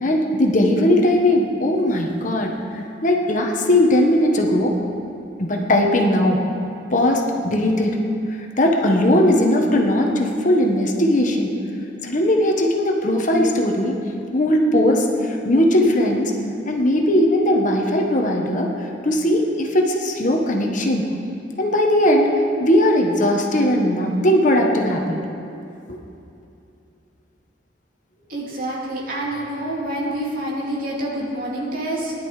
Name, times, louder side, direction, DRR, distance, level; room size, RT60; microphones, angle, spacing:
voice 1, 0.0-2.5 3.0-4.7 5.4-6.4 6.9-8.0 8.6-11.5 12.0-14.0 14.3-16.3 16.6-18.7 19.0-21.1 21.6-22.3 22.6-25.2 25.9-26.0, left 1 dB, 45° left, 1 dB, 1.3 m, -18 dB
voice 2, 28.3-32.1, right 1 dB, 55° right, -5 dB, 2.8 m, -27 dB
17.0 x 11.0 x 4.9 m, 2.7 s
head